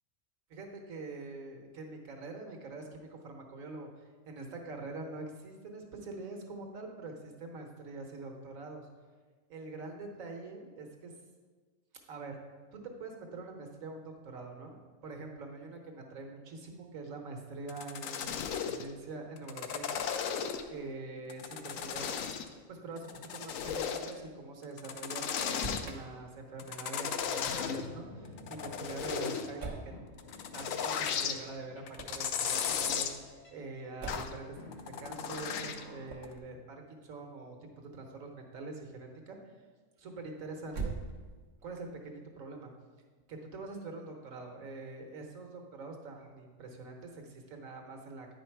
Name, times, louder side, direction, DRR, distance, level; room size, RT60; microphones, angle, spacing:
voice 1, 0.5-8.9 9.5-11.1 12.1-12.4 12.7-20.0 20.7-22.1 22.7-29.9 30.5-34.6 35.0-39.5 40.0-40.9 41.6-42.7 43.3-48.3, right 3 dB, 85° right, 2 dB, 1.5 m, -44 dB
sound 1, 17.7-18.9 19.4-20.8 21.3-22.5 23.0-24.2 24.6-25.9 26.6-27.9 28.3-29.5 30.2-31.4 31.9-33.2 34.1-34.3 34.7-35.8 36.2-36.3, left 7 dB, 80° left, 1.0 m, -35 dB
Motor vehicle (road), 25.4-26.0 29.6-30.0 31.9-32.3 34.0-34.4 36.0-36.4 40.6-41.5, right 4 dB, 55° right, 1.3 m, -40 dB
sound 2, 27.6-36.2, left 2 dB, 55° left, 1.3 m, -52 dB
9.7 x 5.1 x 4.5 m, 1.4 s
omnidirectional pair, 1.4 m